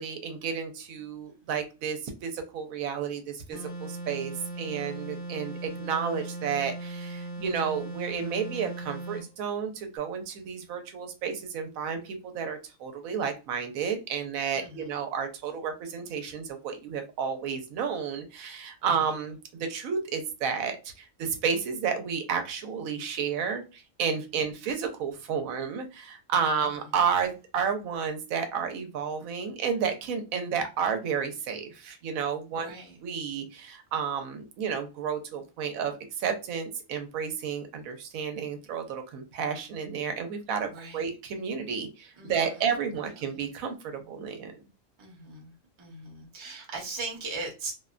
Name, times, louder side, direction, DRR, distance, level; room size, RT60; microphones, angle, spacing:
voice 1, 0.0-32.7 33.0-44.5, right 6 dB, 90° right, 6 dB, 1.0 m, -31 dB
sound 1, 3.5-9.3, right 2 dB, 50° left, 0.9 m, -38 dB
voice 2, 32.6-33.0 40.7-41.1 42.2-42.5 43.3-43.4 45.0-45.5 45.8-47.7, right 3 dB, 30° right, 0 dB, 0.5 m, -39 dB
2.6 x 2.1 x 2.4 m, 0.30 s
omnidirectional pair, 1.4 m